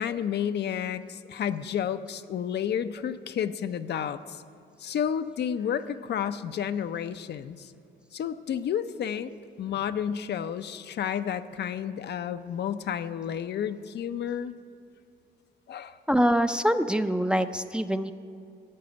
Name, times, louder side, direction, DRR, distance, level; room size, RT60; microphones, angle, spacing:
voice 1, 0.0-4.4 4.8-7.7 8.1-9.3 9.6-14.5 15.7-16.0, left 8 dB, 60° left, 10 dB, 0.5 m, -31 dB
voice 2, 16.1-18.1, equal, 5° right, 8 dB, 0.5 m, -25 dB
12.0 x 7.7 x 9.4 m, 2.5 s
cardioid pair, 90°, 20 cm